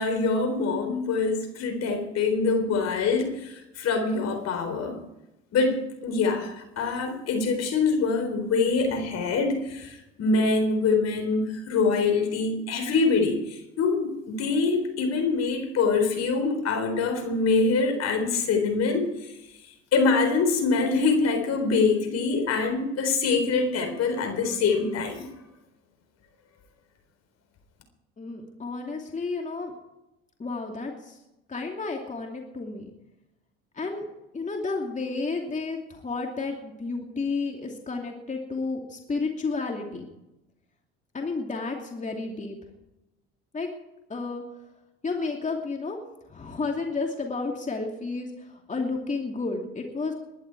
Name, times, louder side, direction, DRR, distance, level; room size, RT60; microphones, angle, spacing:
voice 1, 0.0-4.9 5.5-19.1 19.9-25.2, left 4 dB, 55° left, 5 dB, 4.0 m, -24 dB
voice 2, 28.2-29.7 30.4-31.2 31.5-32.9 33.7-34.1 34.3-40.1 41.1-42.6 43.5-43.7 44.1-44.4 45.0-46.0 46.3-50.1, left 3 dB, 25° left, 2 dB, 2.7 m, -31 dB
21.0 x 11.0 x 4.7 m, 0.94 s
hypercardioid pair, 65°, 31 cm